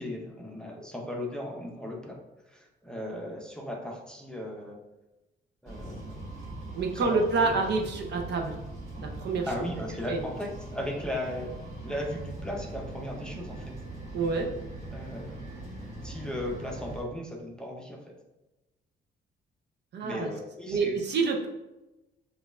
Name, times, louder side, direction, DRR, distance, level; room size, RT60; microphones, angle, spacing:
voice 1, 0.0-2.2 2.5-4.8 5.6-6.2 6.9-7.6 9.5-11.5 11.8-13.7 14.9-15.4 16.0-18.1 20.0-21.0, left 1 dB, 5° left, -1 dB, 0.6 m, -36 dB
sound 1, 5.7-17.0, right 2 dB, 35° right, 1.2 m, -41 dB
voice 2, 6.7-8.6 9.2-9.5 10.1-10.2 14.1-14.5 19.9-20.3 20.7-21.5, right 4 dB, 60° right, 2 dB, 0.6 m, -27 dB
4.9 x 2.4 x 2.4 m, 1.0 s
cardioid pair, 90°, 20 cm